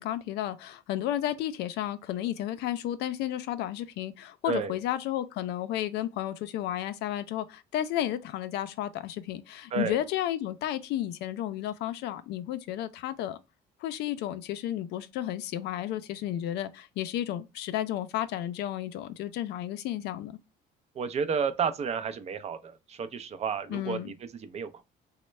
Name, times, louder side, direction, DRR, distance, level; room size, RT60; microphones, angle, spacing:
voice 1, 0.0-13.4 13.8-20.4 23.7-24.1, left 12 dB, 80° left, 0.4 m, -32 dB
voice 2, 20.9-24.8, right 6 dB, 40° right, 0.5 m, -31 dB
3.1 x 2.1 x 3.1 m
cardioid pair, 110°, 17 cm